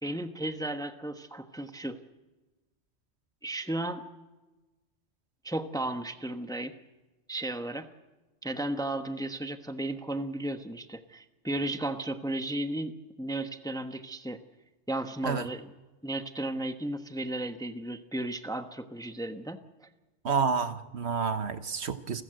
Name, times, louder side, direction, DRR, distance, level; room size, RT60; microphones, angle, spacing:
voice 1, 0.0-2.0 3.4-4.0 5.4-6.7 7.3-7.9 8.4-14.4 14.9-15.7 16.0-19.9, right 1 dB, 5° left, 8 dB, 1.1 m, -34 dB
voice 2, 20.2-22.2, right 5 dB, 65° right, 11 dB, 1.4 m, -29 dB
29.5 x 14.5 x 7.8 m, 1.1 s
omnidirectional pair, 1.2 m